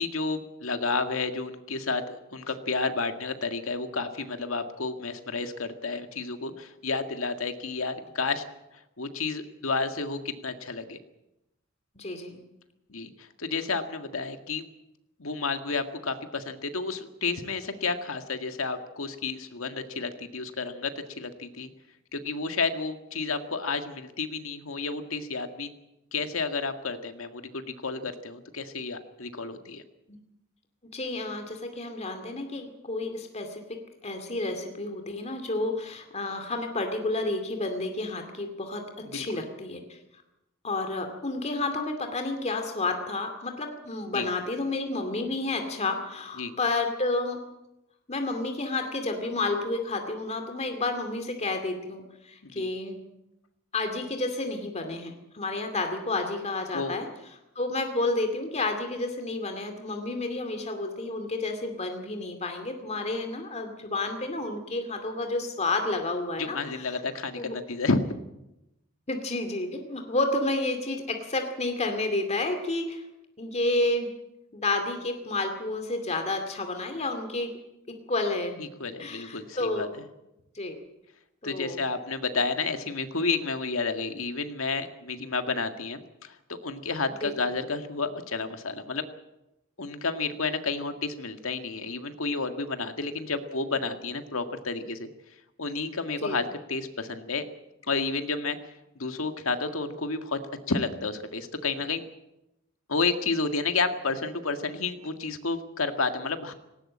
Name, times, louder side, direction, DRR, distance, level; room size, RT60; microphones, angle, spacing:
voice 1, 0.0-8.5 8.7-11.0 12.9-14.6 15.2-21.7 22.1-25.7 26.1-29.8 39.0-39.4 44.1-44.3 46.4-46.5 52.4-52.7 56.7-57.0 66.4-68.2 78.6-79.9 81.4-86.4 86.6-89.0 89.8-95.1 95.6-97.4 97.9-100.4 100.7-102.0 102.9-106.5, left 4 dB, 85° left, 7 dB, 1.9 m, -31 dB
voice 2, 12.0-12.4 30.1-30.2 30.9-40.0 40.6-47.4 48.1-53.0 53.7-57.1 57.6-66.9 67.4-67.6 69.1-73.0 73.4-74.1 74.5-77.5 77.9-78.6 79.0-79.9 80.5-80.8 81.4-81.8 87.2-87.3 96.2-96.4, left 2 dB, 35° left, 5 dB, 2.4 m, -30 dB
19.0 x 18.0 x 8.6 m, 0.91 s
head